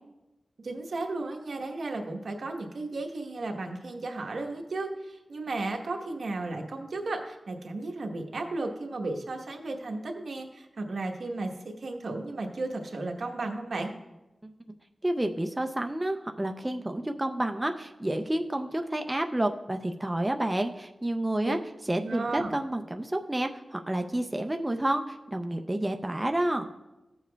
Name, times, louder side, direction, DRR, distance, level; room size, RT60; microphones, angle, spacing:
voice 1, 0.6-13.9 21.5-21.6 22.0-22.5, right 2 dB, 75° right, 2 dB, 1.0 m, -34 dB
voice 2, 15.0-21.6 21.9-26.7, right 1 dB, 15° right, 5 dB, 0.4 m, -30 dB
15.5 x 7.2 x 2.3 m, 1.0 s
wide cardioid pair, 105°, 0 cm